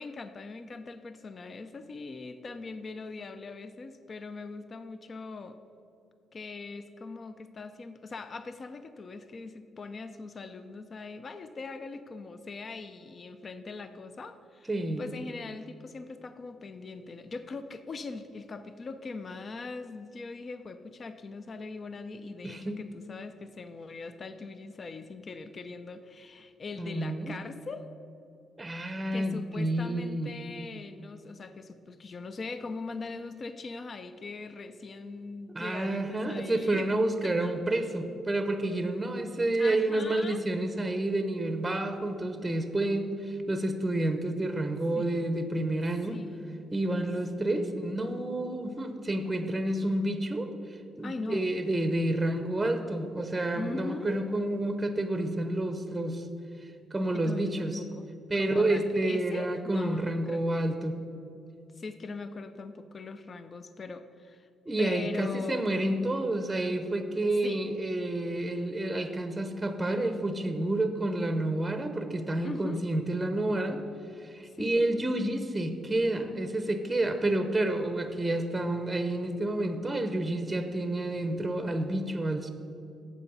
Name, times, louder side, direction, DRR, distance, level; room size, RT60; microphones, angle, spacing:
voice 1, 0.0-5.6 6.3-14.7 15.0-27.9 29.1-36.9 37.2-37.5 39.6-40.4 44.9-45.1 46.1-46.5 47.4-48.0 51.0-51.5 53.5-54.2 57.1-60.4 61.8-64.5 64.8-65.7 67.4-67.7 72.4-72.8 74.5-74.9, left 3 dB, 40° left, 11 dB, 0.4 m, -41 dB
voice 2, 14.7-15.0 22.4-22.8 26.8-27.3 28.6-30.3 35.5-46.2 46.7-56.2 56.9-57.8 58.3-61.0 64.7-73.8 74.2-82.5, right 1 dB, 15° right, 8 dB, 0.7 m, -29 dB
8.4 x 7.0 x 5.4 m, 2.6 s
cardioid pair, 90°, 0 cm